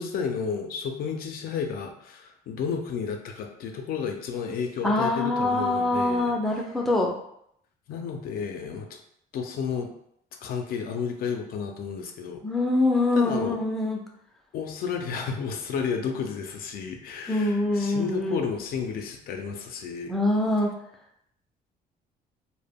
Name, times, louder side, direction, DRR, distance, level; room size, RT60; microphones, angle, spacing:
voice 1, 0.0-6.7 7.9-9.0 9.3-9.9 10.4-12.4 13.1-13.6 14.5-20.1, left 6 dB, 60° left, 3 dB, 0.4 m, -32 dB
voice 2, 4.8-7.1 12.4-14.0 17.3-18.4 20.1-20.7, left 2 dB, ahead, -1 dB, 0.4 m, -24 dB
2.1 x 2.1 x 3.4 m, 0.72 s
cardioid pair, 110°, 17 cm